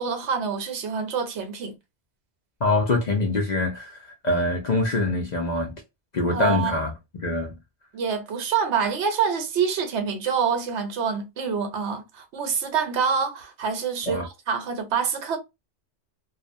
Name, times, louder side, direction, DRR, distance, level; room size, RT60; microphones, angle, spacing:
voice 1, 0.0-1.7 6.3-6.7 7.9-15.4, right 6 dB, 75° right, 1.0 m, -26 dB
voice 2, 2.6-5.8 6.1-6.9 7.2-7.5 14.1-14.3, left 2 dB, 50° left, 0.5 m, -24 dB
2.4 x 2.0 x 2.5 m
omnidirectional pair, 1.2 m